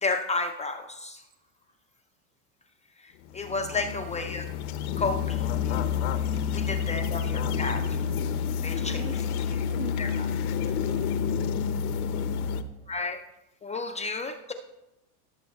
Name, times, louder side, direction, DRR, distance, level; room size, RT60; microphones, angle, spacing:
voice 1, 0.0-1.2 3.3-4.5 5.0-5.8 6.5-8.0 8.6-9.6 10.0-10.3 12.9-13.2 13.6-14.5, left 3 dB, 15° left, 5 dB, 0.4 m, -32 dB
sound 1, 3.2-12.6, left 7 dB, 85° left, 0.9 m, -29 dB
voice 2, 3.5-4.0 6.3-6.4 8.8-10.2 10.8-12.0 12.6-12.7, right 7 dB, 55° right, 9 dB, 0.9 m, -44 dB
17.5 x 7.5 x 2.3 m, 0.89 s
supercardioid pair, 120°, 43 cm